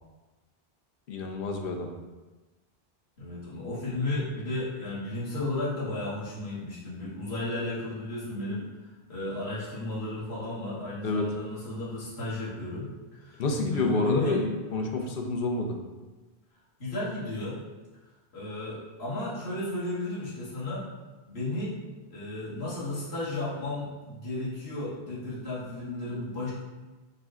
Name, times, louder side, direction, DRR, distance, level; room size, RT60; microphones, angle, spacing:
voice 1, 1.1-1.9 11.0-11.3 13.4-15.8, left 3 dB, 65° left, 2 dB, 0.8 m, -28 dB
voice 2, 3.2-13.4 13.7-14.4 16.8-17.6 18.3-20.9 21.3-21.8 22.1-26.5, left 2 dB, 85° left, -9 dB, 1.7 m, -34 dB
6.6 x 2.2 x 3.6 m, 1.2 s
omnidirectional pair, 1.0 m